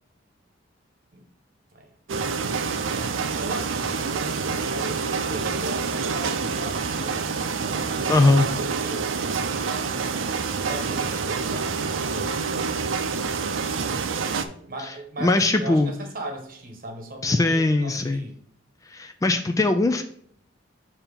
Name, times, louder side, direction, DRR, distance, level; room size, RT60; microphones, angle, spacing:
sound 1, 2.1-14.5, right 5 dB, 85° right, 0.5 m, -27 dB
voice 1, 2.2-7.4 7.9-9.2 9.7-10.1 10.6-12.4 14.7-18.3, right 1 dB, 50° right, 3 dB, 1.1 m, -38 dB
voice 2, 8.1-8.5 14.8-14.9 15.2-15.9 17.2-18.2 18.9-20.0, left 2 dB, 15° left, 7 dB, 0.3 m, -20 dB
6.8 x 2.9 x 5.1 m, 0.63 s
head